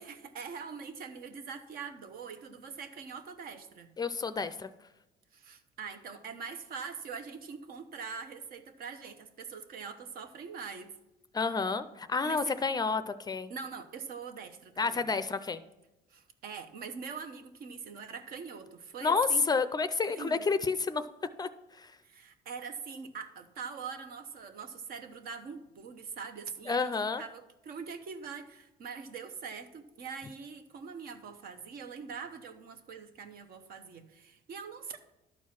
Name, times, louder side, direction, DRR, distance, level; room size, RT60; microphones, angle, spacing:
voice 1, 0.0-3.9 5.3-11.0 12.2-12.6 13.5-15.1 16.1-19.4 20.1-20.4 22.0-26.9 27.2-35.0, right 5 dB, 60° right, 8 dB, 0.9 m, -43 dB
voice 2, 4.0-4.7 11.3-13.5 14.8-15.6 19.0-21.1 21.4-21.9 26.7-27.2, left 4 dB, 25° left, 12 dB, 0.4 m, -30 dB
11.5 x 4.6 x 5.9 m, 0.97 s
cardioid pair, 110°, 17 cm